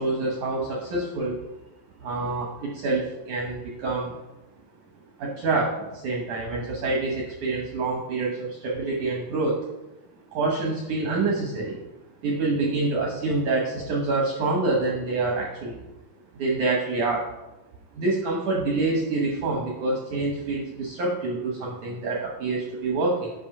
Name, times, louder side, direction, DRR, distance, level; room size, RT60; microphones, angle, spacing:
voice 1, 0.0-1.4 2.0-4.1 5.2-9.6 10.3-11.8 12.2-15.8 16.3-17.3 17.9-23.3, right 3 dB, 80° right, 0 dB, 1.7 m, -26 dB
9.6 x 5.2 x 5.4 m, 0.98 s
omnidirectional pair, 5.0 m